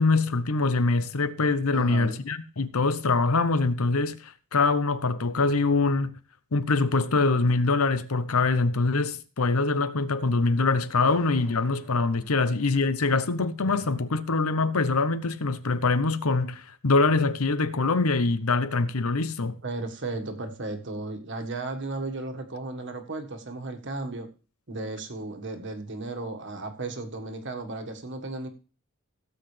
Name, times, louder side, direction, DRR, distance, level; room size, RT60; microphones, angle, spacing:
voice 1, 0.0-6.1 6.5-19.6, left 3 dB, 80° left, 0.9 m, -24 dB
voice 2, 1.7-2.2 19.6-24.3 24.7-28.5, right 2 dB, 55° right, 1.6 m, -35 dB
sound 1, 11.0-13.9, left 2 dB, 65° left, 2.1 m, -52 dB
17.0 x 7.9 x 3.3 m
head